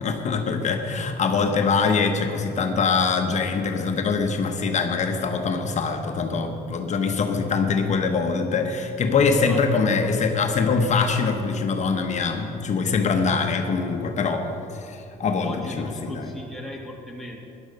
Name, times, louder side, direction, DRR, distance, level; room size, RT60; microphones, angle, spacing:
voice 1, 0.0-16.3, left 5 dB, 45° left, 4 dB, 1.2 m, -23 dB
voice 2, 9.4-9.9 15.4-17.5, left 1 dB, ahead, -2 dB, 2.2 m, -38 dB
14.0 x 11.0 x 5.4 m, 2.8 s
cardioid pair, 110°, 17 cm